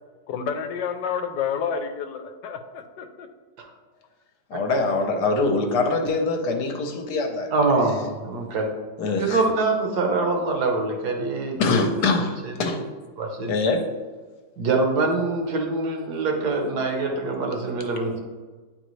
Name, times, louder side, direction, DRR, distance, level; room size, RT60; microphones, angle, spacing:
voice 1, 0.3-3.3, left 7 dB, 90° left, 8 dB, 1.2 m, -29 dB
voice 2, 4.5-7.5 9.0-9.4 11.6-12.8 13.5-13.8, left 3 dB, 70° left, 5 dB, 1.3 m, -23 dB
voice 3, 7.5-8.7 9.2-11.6 12.6-12.7 13.2-13.5 14.6-18.2, right 3 dB, 70° right, 2 dB, 1.4 m, -24 dB
8.9 x 4.0 x 3.1 m, 1.4 s
omnidirectional pair, 1.8 m